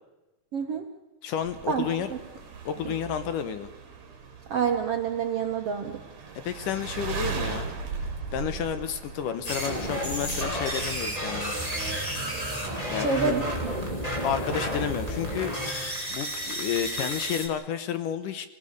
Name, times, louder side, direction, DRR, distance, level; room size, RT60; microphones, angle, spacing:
voice 1, 0.5-0.8 1.7-1.8 2.1-2.2 4.5-6.0 13.0-13.7, right 6 dB, 75° right, 3 dB, 1.3 m, -27 dB
voice 2, 1.2-2.1 2.7-3.7 6.4-7.7 8.3-11.6 12.9-13.3 14.2-15.5 16.1-18.5, left 9 dB, 70° left, 11 dB, 2.1 m, -31 dB
sound 1, 1.4-14.0, right 5 dB, 45° right, 3.8 m, -38 dB
Computer Virus Overload Sound, 9.4-17.5, equal, 10° left, 2.9 m, -31 dB
28.0 x 17.5 x 6.6 m, 1.0 s
omnidirectional pair, 4.8 m